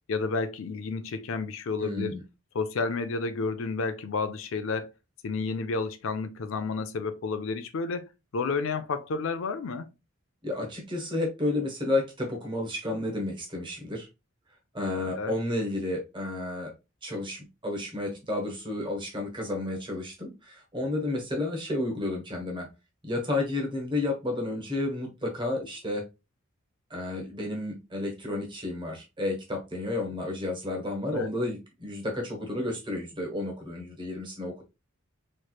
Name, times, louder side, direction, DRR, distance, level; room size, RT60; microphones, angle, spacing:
voice 1, 0.1-2.2 2.5-4.9 5.2-8.1 8.3-9.9 15.1-15.3 31.1-31.3, left 4 dB, 70° left, 0.4 m, -31 dB
voice 2, 1.8-2.2 10.4-14.1 14.7-16.7 17.0-22.7 23.0-26.1 26.9-34.6, left 2 dB, 25° right, 1.1 m, -31 dB
3.2 x 3.1 x 2.3 m
head